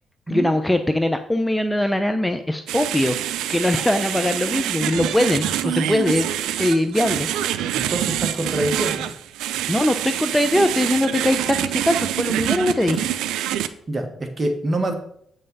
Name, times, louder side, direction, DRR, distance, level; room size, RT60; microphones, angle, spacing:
voice 1, 0.3-3.2 3.5-6.3 6.6-7.3 9.7-13.1, left 1 dB, 10° left, 9 dB, 0.6 m, -21 dB
sound 1, 2.7-13.7, right 12 dB, 90° right, 0.5 m, -26 dB
voice 2, 7.7-9.1 13.9-14.9, right 1 dB, 30° right, 5 dB, 1.7 m, -25 dB
7.7 x 5.6 x 5.4 m, 0.67 s
cardioid pair, 90°, 0 cm